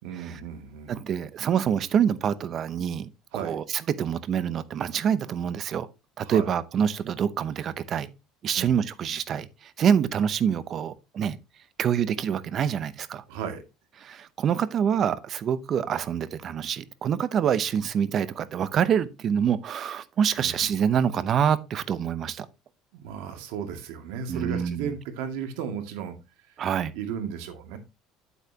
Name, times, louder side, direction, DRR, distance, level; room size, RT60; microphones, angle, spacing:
voice 1, 0.0-1.0 3.3-3.6 6.2-6.5 8.5-8.7 13.3-13.6 20.4-20.5 22.9-26.2 27.0-27.8, right 7 dB, 85° right, 2.2 m, -35 dB
voice 2, 0.9-5.9 6.2-8.1 8.4-11.4 11.8-13.2 14.0-22.5 24.3-24.9 26.6-26.9, right 8 dB, 40° right, 0.8 m, -26 dB
9.0 x 8.2 x 2.9 m
cardioid pair, 145°, 0 cm